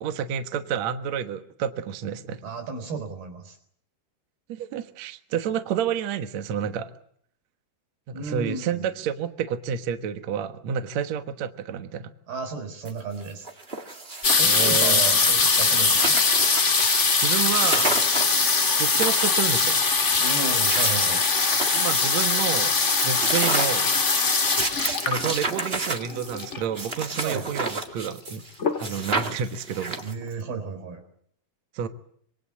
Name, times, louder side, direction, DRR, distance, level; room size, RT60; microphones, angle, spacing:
voice 1, 0.0-2.4 4.5-6.9 8.1-12.1 14.4-15.0 17.2-18.0 18.8-19.8 21.7-22.8 23.0-23.9 25.0-28.4 28.8-30.0 31.7-31.9, right 8 dB, 60° right, 8 dB, 2.1 m, -29 dB
voice 2, 2.4-3.6 8.1-8.9 12.3-13.5 14.3-16.1 20.2-21.2 27.2-27.5 30.0-31.0, right 4 dB, 75° right, 8 dB, 5.7 m, -33 dB
sound 1, 12.8-12.9 13.2-14.9 15.3-15.4 15.6-16.8 17.2-17.3 17.6-18.4 18.8-19.7 20.4-22.0 22.4-22.5 22.8-28.5 28.8-30.3, right 3 dB, 35° right, 0.9 m, -31 dB
sound 2, 14.2-26.8 27.6-27.7 27.9-28.3 28.6-29.2 29.7-29.8 30.0-30.1, left 4 dB, 35° left, 1.2 m, -22 dB
26.0 x 23.0 x 8.3 m, 0.65 s
omnidirectional pair, 4.4 m